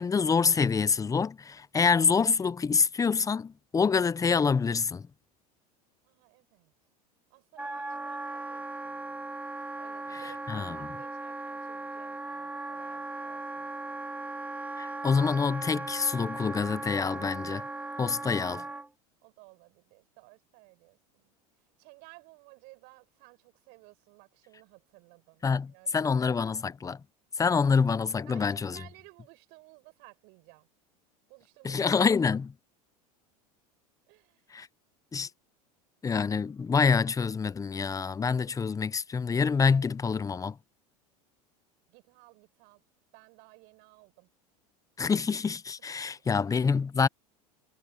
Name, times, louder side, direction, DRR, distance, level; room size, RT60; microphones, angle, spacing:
voice 1, 0.0-5.1 10.1-10.2 10.5-10.8 14.8-17.6 18.0-18.6 25.4-27.0 27.4-28.8 31.6-32.5 34.5-34.7 35.1-35.3 36.0-40.6 45.0-47.1, left 5 dB, 15° left, 0.8 m, -26 dB
voice 2, 6.0-6.7 7.3-9.3 9.7-14.0 19.2-21.3 21.8-26.6 28.2-30.7 31.3-32.4 34.1-34.5 41.9-42.8 43.1-44.3 46.0-46.1, right 29 dB, 60° right, 7.7 m, -57 dB
Wind instrument woodwind instrument, 7.6-18.9, right 2 dB, 10° right, 1.4 m, -38 dB
hypercardioid pair, 90°, 19 cm